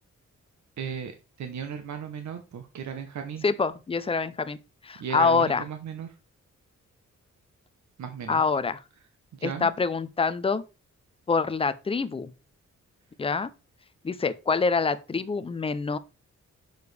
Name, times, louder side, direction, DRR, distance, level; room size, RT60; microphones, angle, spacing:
voice 1, 0.8-1.1 1.4-3.4 5.0-6.1 8.0-8.4 9.4-9.7, right 7 dB, 75° right, 0.9 m, -35 dB
voice 2, 3.4-4.6 4.8-5.7 8.3-8.8 9.4-10.6 11.3-12.3 13.2-13.5 14.0-16.0, left 4 dB, 20° left, 0.4 m, -26 dB
6.8 x 6.5 x 3.3 m
wide cardioid pair, 175°, 29 cm